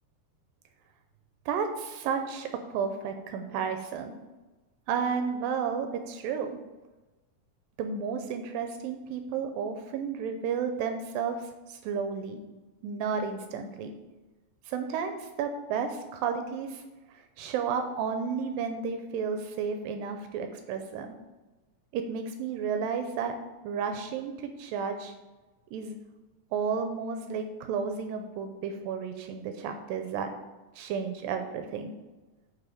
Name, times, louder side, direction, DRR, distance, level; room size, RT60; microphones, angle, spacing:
voice 1, 1.5-4.1 4.9-6.6 7.8-12.4 12.8-13.9 14.7-16.8 17.1-21.2 21.9-23.4 23.6-25.1 25.7-26.0 26.5-30.3 30.8-31.9, right 6 dB, 85° right, 6 dB, 2.4 m, -32 dB
7.3 x 5.6 x 7.0 m, 1.2 s
omnidirectional pair, 4.0 m